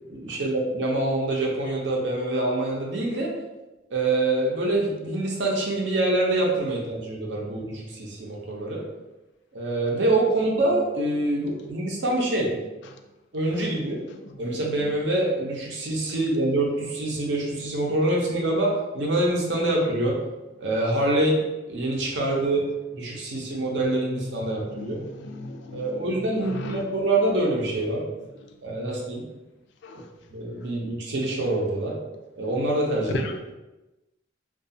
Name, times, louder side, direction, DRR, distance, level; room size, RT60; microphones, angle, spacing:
voice 1, 0.0-3.3 3.9-8.8 9.5-12.5 13.3-14.0 14.4-20.2 20.6-22.6 22.9-25.0 25.7-28.0 28.6-29.2 29.9-30.0 30.3-31.9 32.4-33.2, right 2 dB, 70° right, 0.6 m, -25 dB
voice 2, 24.7-26.0 26.4-26.8 29.8-30.0 33.1-33.6, left 1 dB, 65° left, 0.3 m, -35 dB
2.4 x 2.3 x 2.6 m
head